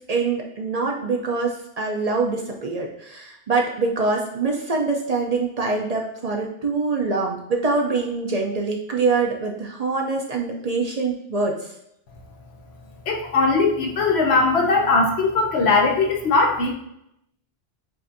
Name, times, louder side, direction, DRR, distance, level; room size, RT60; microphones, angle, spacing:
voice 1, 0.1-11.7, right 3 dB, 45° right, 0 dB, 0.6 m, -24 dB
voice 2, 13.1-16.7, left 3 dB, 85° left, 2 dB, 1.0 m, -19 dB
7.5 x 2.5 x 2.5 m, 0.80 s
omnidirectional pair, 1.1 m